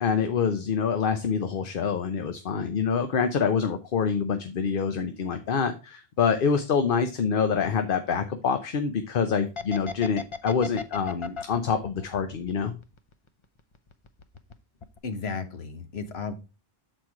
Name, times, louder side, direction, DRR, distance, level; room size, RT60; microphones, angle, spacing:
voice 1, 0.0-12.7, left 6 dB, 60° left, 0.9 m, -26 dB
sound 1, 9.6-13.3 13.6-14.5 14.8-15.0, left 5 dB, 35° left, 0.6 m, -36 dB
voice 2, 15.0-16.3, left 5 dB, 80° left, 1.3 m, -34 dB
7.7 x 4.4 x 4.6 m
omnidirectional pair, 1.0 m